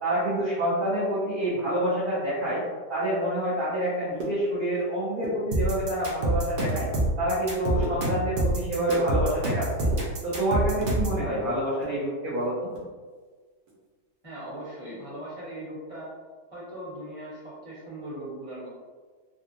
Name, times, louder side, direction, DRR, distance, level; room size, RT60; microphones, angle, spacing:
voice 1, 0.0-2.6 2.9-6.9 7.2-9.9 10.2-12.7, right 1 dB, 45° right, -11 dB, 0.7 m, -27 dB
sound 1, 3.9-4.9 5.1-5.9 6.4-6.9 7.3-9.5 9.8-11.0 11.4-12.9 13.2-13.3 13.7-13.9 14.2-14.5, right 1 dB, 65° right, 1.2 m, -39 dB
sound 2, 5.5-11.2, right 1 dB, 85° right, 0.4 m, -26 dB
voice 2, 14.2-16.1 16.5-18.7, right 1 dB, 20° right, -9 dB, 1.3 m, -39 dB
3.6 x 2.3 x 2.7 m, 1.5 s
omnidirectional pair, 1.9 m